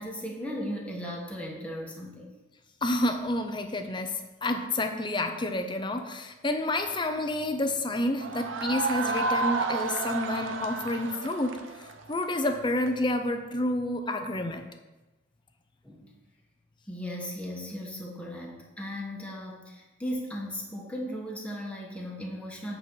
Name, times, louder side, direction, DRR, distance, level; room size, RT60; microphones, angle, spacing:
voice 1, 0.0-2.3 15.8-16.1 16.9-22.8, equal, 5° left, -2 dB, 1.3 m, -37 dB
voice 2, 2.8-11.6 12.1-14.6, left 1 dB, 25° left, 6 dB, 0.7 m, -29 dB
sound 1, 8.2-12.9, right 3 dB, 80° right, 0.7 m, -31 dB
8.4 x 4.4 x 6.3 m, 1.1 s
head